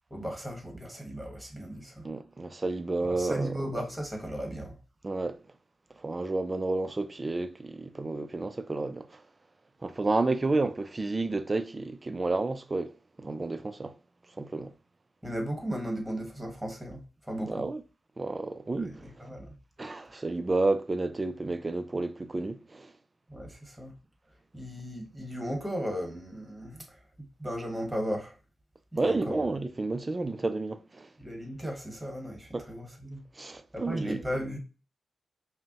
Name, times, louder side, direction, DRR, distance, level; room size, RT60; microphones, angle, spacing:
voice 1, 0.1-2.0 3.0-4.8 15.2-17.7 18.8-19.5 23.3-23.9 24.5-27.0 27.4-28.3 28.9-29.4 31.2-33.2 33.7-34.6, equal, 5° right, 1.3 m, -36 dB
voice 2, 2.0-3.5 5.0-5.4 6.0-9.2 9.8-14.0 14.4-14.7 17.5-17.8 18.2-19.0 19.8-22.9 29.0-31.1 32.5-32.7 33.4-34.2, right 2 dB, 30° right, 0.4 m, -31 dB
5.2 x 2.1 x 2.9 m
cardioid pair, 90°, 0 cm